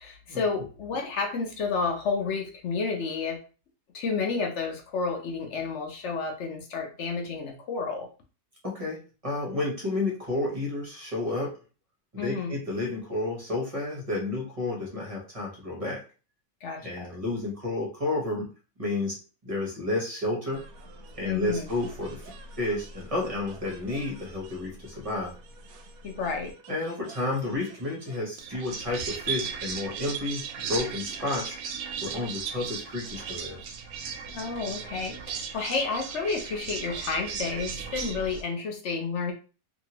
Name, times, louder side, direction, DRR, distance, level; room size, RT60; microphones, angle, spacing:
voice 1, 0.0-3.4 3.9-8.1 12.2-12.6 16.6-17.1 21.2-21.7 26.0-26.5 34.3-39.3, left 4 dB, 60° left, 2 dB, 0.8 m, -31 dB
voice 2, 8.6-11.6 12.1-16.0 16.8-18.5 18.8-19.1 19.4-20.6 21.2-22.2 22.6-25.3 26.7-30.4 30.7-31.6 32.0-33.6, left 2 dB, 30° right, -2 dB, 0.7 m, -31 dB
sound 1, 20.5-38.4, right 6 dB, 70° right, 0.9 m, -38 dB
2.8 x 2.6 x 2.9 m, 0.35 s
omnidirectional pair, 1.7 m